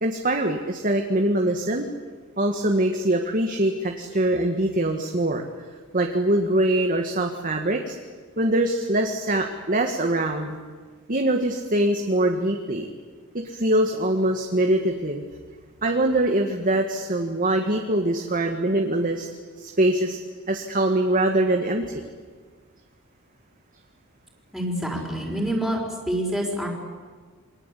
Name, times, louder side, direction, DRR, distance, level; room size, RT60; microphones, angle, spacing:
voice 1, 0.0-1.9 2.4-5.5 5.9-8.0 8.4-10.6 11.1-12.9 13.3-15.3 15.8-19.3 19.6-20.2 20.5-22.0, right 1 dB, 40° right, 3 dB, 1.9 m, -23 dB
voice 2, 24.5-25.8 26.1-26.7, equal, ahead, -3 dB, 5.2 m, -26 dB
28.5 x 23.5 x 8.6 m, 1.5 s
head